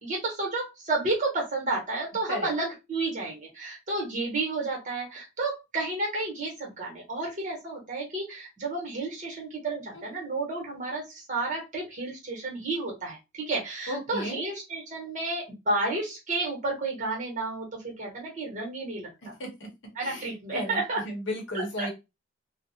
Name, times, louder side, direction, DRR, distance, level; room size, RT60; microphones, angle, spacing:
voice 1, 0.0-19.3 20.0-21.0 21.5-21.9, right 2 dB, 40° right, -1 dB, 1.0 m, -31 dB
voice 2, 13.9-14.4 19.4-19.7 20.0-21.9, left 1 dB, 65° left, 1 dB, 0.8 m, -34 dB
2.3 x 2.0 x 2.6 m, 0.24 s
head